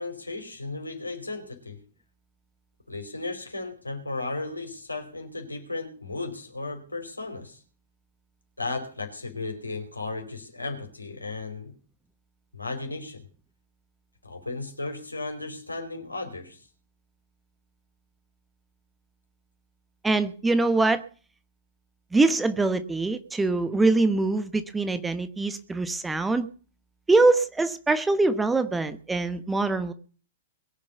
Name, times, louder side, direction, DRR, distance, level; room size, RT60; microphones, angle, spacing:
voice 1, 0.0-1.8 2.9-7.6 8.6-11.8 12.5-13.3 14.2-16.7, left 3 dB, 85° left, 3 dB, 4.6 m, -35 dB
voice 2, 20.0-21.0 22.1-26.5 27.1-29.9, right 3 dB, 10° right, 12 dB, 1.1 m, -23 dB
22.0 x 7.4 x 6.9 m, 0.40 s
figure-of-eight pair, 105°, 0 cm